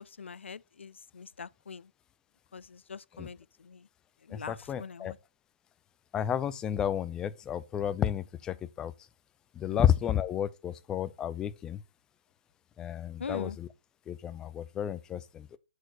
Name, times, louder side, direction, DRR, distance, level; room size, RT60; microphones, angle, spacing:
voice 1, 0.0-1.9 2.5-3.9 4.2-5.2 9.7-9.8 13.2-13.6, left 5 dB, 85° left, 0.4 m, -43 dB
voice 2, 4.3-5.1 6.1-8.9 9.5-11.8 12.8-13.7 14.1-15.6, left 10 dB, 10° left, 0.4 m, -31 dB
6.5 x 3.9 x 6.3 m
hypercardioid pair, 150°, 6 cm